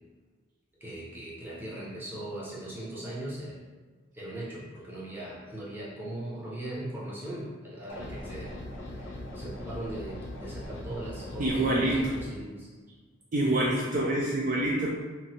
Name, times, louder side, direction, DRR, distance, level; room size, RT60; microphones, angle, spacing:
voice 1, 0.8-3.6 4.1-8.5 8.8-12.7, right 1 dB, 10° right, -7 dB, 0.7 m, -39 dB
sound 1, 7.9-12.3, left 1 dB, 75° left, 0.6 m, -40 dB
voice 2, 11.4-12.0 13.3-14.9, right 1 dB, 40° right, -3 dB, 0.4 m, -26 dB
2.9 x 2.5 x 2.8 m, 1.4 s
head